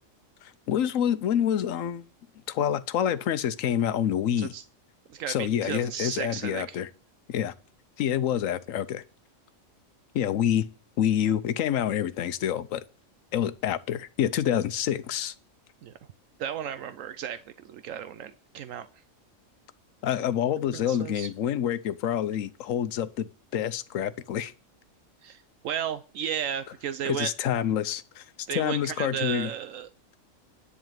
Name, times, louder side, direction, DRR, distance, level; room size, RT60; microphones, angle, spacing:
voice 1, 0.4-2.1 2.5-4.5 5.3-6.9 7.3-7.5 8.0-9.0 10.1-10.7 11.0-12.8 13.3-15.3 20.0-24.5 27.0-28.2 28.5-29.5, left 10 dB, 80° left, 1.1 m, -27 dB
voice 2, 5.1-6.8 15.8-15.9 16.4-18.9 20.7-21.3 25.2-27.3 28.5-29.9, right 9 dB, 80° right, 1.0 m, -34 dB
10.5 x 4.0 x 7.4 m
omnidirectional pair, 1.4 m